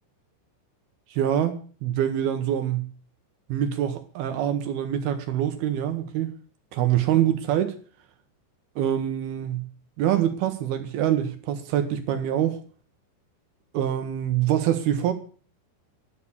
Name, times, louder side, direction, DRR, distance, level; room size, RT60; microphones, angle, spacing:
voice 1, 1.1-2.9 3.5-6.3 6.7-7.8 8.8-9.7 10.0-12.6 13.7-15.1, right 10 dB, 70° right, 2.6 m, -25 dB
11.0 x 6.6 x 8.5 m
omnidirectional pair, 5.1 m